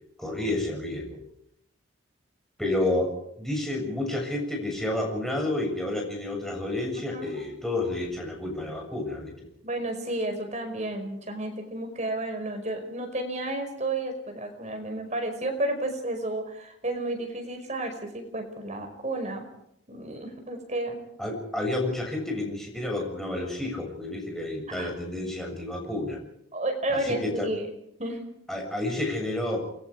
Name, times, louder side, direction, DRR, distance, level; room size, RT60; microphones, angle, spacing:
voice 1, 0.2-1.2 2.6-9.3 21.2-26.2 26.9-27.5 28.5-29.7, left 1 dB, ahead, 0 dB, 7.2 m, -30 dB
voice 2, 7.0-7.4 9.6-19.5 19.9-21.0 24.7-24.9 26.5-27.7 28.0-28.2, right 1 dB, 35° right, 5 dB, 5.2 m, -32 dB
29.0 x 21.5 x 5.0 m, 0.74 s
head